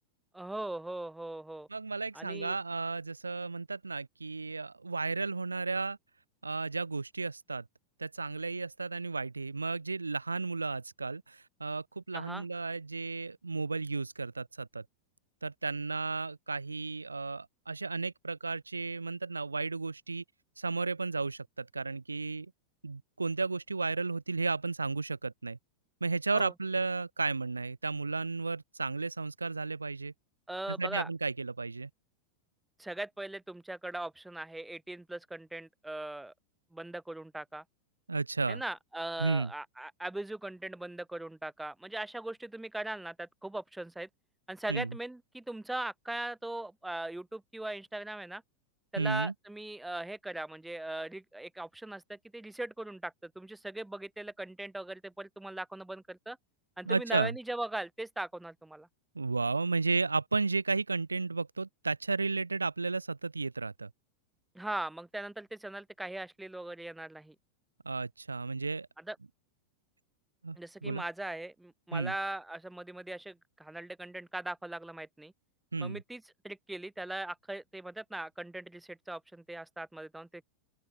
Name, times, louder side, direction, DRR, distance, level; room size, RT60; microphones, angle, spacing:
voice 1, 0.3-1.7 2.1-2.6 12.1-12.4 26.3-26.5 30.5-31.1 32.8-36.3 36.7-37.6 38.5-44.1 44.5-48.4 48.9-56.4 56.8-58.9 64.5-67.3 69.0-69.2 70.6-75.3 75.8-80.4, right 1 dB, 5° right, 4.2 m, -40 dB
voice 2, 1.7-6.0 6.4-7.6 8.0-14.8 15.4-20.2 20.6-22.5 22.8-25.6 26.0-30.1 30.7-31.9 38.1-38.6 39.2-39.5 44.7-44.9 49.0-49.3 56.9-57.3 59.2-63.9 67.9-68.9 70.4-71.0 71.9-72.1 75.7-76.0, right 3 dB, 80° right, 0.6 m, -33 dB
open air
figure-of-eight pair, 90°, 0 cm